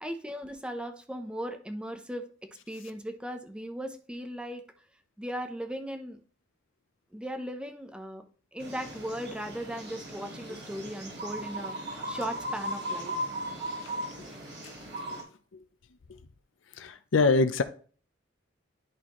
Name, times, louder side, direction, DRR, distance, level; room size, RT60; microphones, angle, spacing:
voice 1, 0.0-2.2 2.7-4.6 5.2-6.2 7.1-8.2 8.5-13.1, equal, 5° right, 0.7 m, -37 dB
sound 1, 8.6-15.2, right 1 dB, 60° right, 2.7 m, -37 dB
voice 2, 16.8-17.6, left 3 dB, 70° left, 0.6 m, -25 dB
11.0 x 4.1 x 3.0 m
head